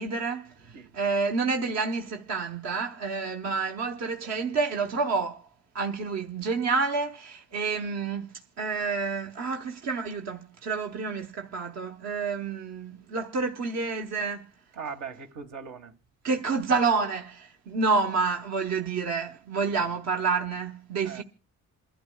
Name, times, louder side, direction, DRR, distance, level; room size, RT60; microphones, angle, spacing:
voice 1, 0.0-5.5 5.7-14.5 16.2-21.2, right 4 dB, 60° right, 1.0 m, -29 dB
voice 2, 14.8-15.9 19.7-19.9 21.0-21.2, right 6 dB, 80° right, 1.5 m, -39 dB
28.5 x 12.0 x 2.2 m
cardioid pair, 90°, 30 cm